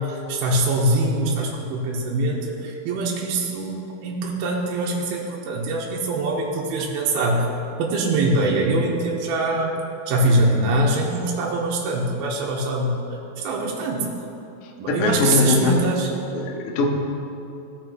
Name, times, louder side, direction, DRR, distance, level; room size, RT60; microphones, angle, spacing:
voice 1, 0.0-7.5 7.8-9.7 10.1-14.1 14.8-16.1, right 2 dB, 75° right, -2 dB, 2.6 m, -23 dB
voice 2, 14.9-15.9 16.3-16.9, left 3 dB, 80° left, 1 dB, 1.7 m, -21 dB
16.0 x 6.0 x 3.0 m, 2.8 s
omnidirectional pair, 4.7 m